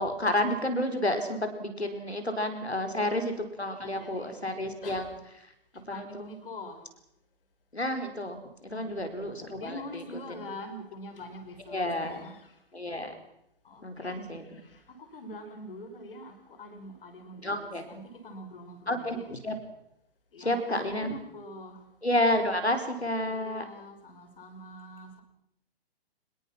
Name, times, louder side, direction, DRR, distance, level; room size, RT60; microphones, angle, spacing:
voice 1, 0.0-3.3 3.6-5.1 5.9-6.3 7.7-10.0 10.4-10.5 11.7-12.2 12.7-13.2 13.8-14.4 17.4-17.8 18.9-19.5 20.4-21.1 22.0-23.7, left 1 dB, 85° left, 4.7 m, -30 dB
voice 2, 2.8-3.2 3.8-4.3 4.8-5.1 5.9-6.9 8.7-9.1 9.6-12.6 13.6-19.3 20.3-21.8 23.2-25.2, left 1 dB, 60° left, 5.4 m, -44 dB
25.5 x 21.5 x 6.1 m
figure-of-eight pair, 125°, 31 cm